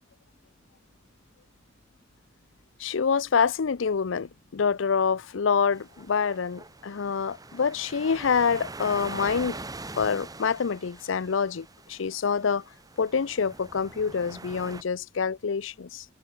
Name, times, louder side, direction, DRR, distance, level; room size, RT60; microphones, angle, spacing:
voice 1, 2.8-9.6 10.0-12.6 13.0-16.0, left 6 dB, 75° left, 0.6 m, -26 dB
sound 1, 5.7-14.8, right 2 dB, 20° right, 1.8 m, -43 dB
head